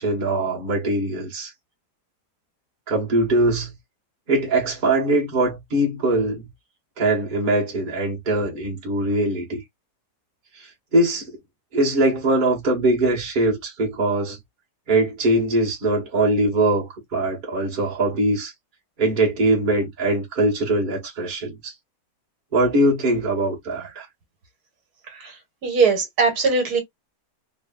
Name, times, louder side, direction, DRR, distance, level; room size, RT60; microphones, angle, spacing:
voice 1, 0.0-1.5 2.9-3.7 4.3-6.5 7.0-9.6 10.6-11.4 11.7-14.4 14.9-18.5 19.0-21.7 22.5-24.1, right 1 dB, 35° right, 1.2 m, -22 dB
voice 2, 25.6-26.8, right 4 dB, 70° right, 1.6 m, -20 dB
3.3 x 2.3 x 2.2 m
omnidirectional pair, 1.7 m